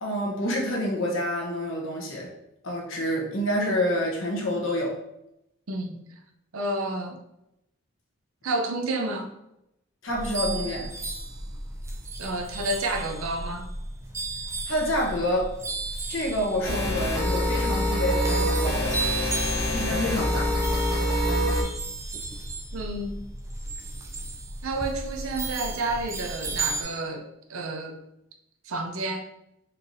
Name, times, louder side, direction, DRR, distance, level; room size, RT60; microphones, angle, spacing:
voice 1, 0.0-2.3 2.6-4.9 10.0-10.9 14.7-15.5 16.1-19.0 19.6-20.5, equal, 65° left, -1 dB, 1.0 m, -28 dB
voice 2, 6.5-7.2 8.4-9.3 12.2-13.7 19.2-19.3 22.7-23.3 24.6-28.0 28.7-29.2, right 2 dB, 80° right, 5 dB, 0.6 m, -30 dB
sound 1, 10.1-26.8, right 2 dB, 15° right, 0.4 m, -34 dB
sound 2, 16.6-21.6, equal, 15° left, 1.3 m, -25 dB
4.3 x 3.3 x 2.6 m, 0.85 s
head